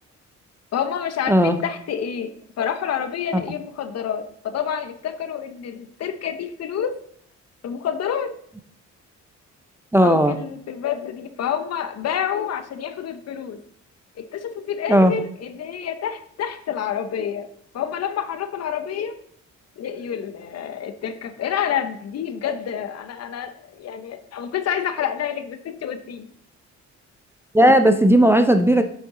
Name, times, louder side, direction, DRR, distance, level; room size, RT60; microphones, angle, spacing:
voice 1, 0.7-7.0 7.6-8.3 10.0-13.6 14.2-17.5 17.7-19.2 19.8-26.3, left 8 dB, 55° left, 10 dB, 0.7 m, -28 dB
voice 2, 9.9-10.4 14.9-15.1 27.5-28.8, right 1 dB, 10° right, 7 dB, 0.5 m, -15 dB
6.6 x 5.8 x 3.7 m, 0.65 s
cardioid pair, 90°, 30 cm